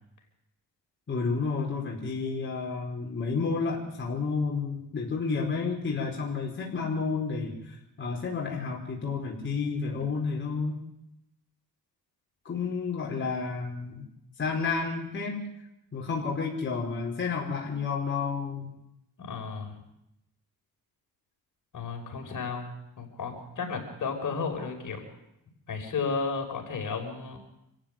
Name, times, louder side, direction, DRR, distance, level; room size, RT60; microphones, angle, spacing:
voice 1, 1.1-10.8 12.5-14.0 14.4-15.4 15.9-18.7, left 4 dB, 30° left, -2 dB, 5.0 m, -31 dB
voice 2, 19.2-19.8 21.7-22.7 23.0-25.0 25.7-27.4, left 5 dB, 55° left, 3 dB, 6.1 m, -33 dB
27.0 x 15.0 x 9.3 m, 0.83 s
cardioid pair, 135°, 38 cm